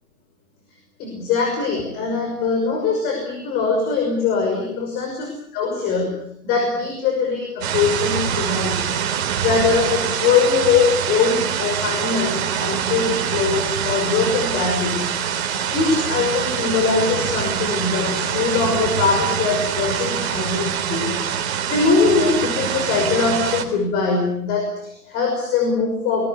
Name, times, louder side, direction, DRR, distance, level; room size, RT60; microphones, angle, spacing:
voice 1, 1.0-8.9 9.4-15.1 15.7-21.1 21.6-26.2, left 4 dB, 20° left, 3 dB, 5.9 m, -22 dB
sound 1, 7.6-23.6, right 8 dB, 40° right, 4.0 m, -24 dB
26.5 x 21.0 x 8.2 m, 0.70 s
hypercardioid pair, 155°, 46 cm